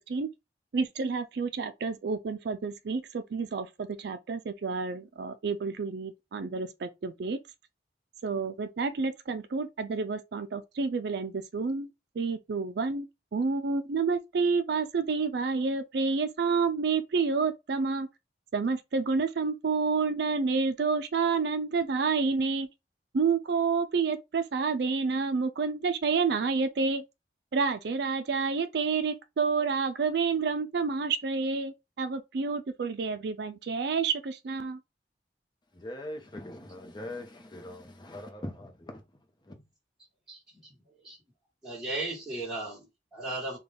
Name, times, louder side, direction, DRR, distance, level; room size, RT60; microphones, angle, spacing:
voice 1, 0.7-7.4 8.2-11.9 12.2-18.1 18.5-22.7 23.1-27.0 27.5-34.8, right 4 dB, 65° right, 0.4 m, -29 dB
voice 2, 35.8-39.0, left 1 dB, 25° left, 0.8 m, -41 dB
voice 3, 41.6-43.6, right 2 dB, ahead, 1.3 m, -35 dB
3.9 x 2.3 x 3.4 m
head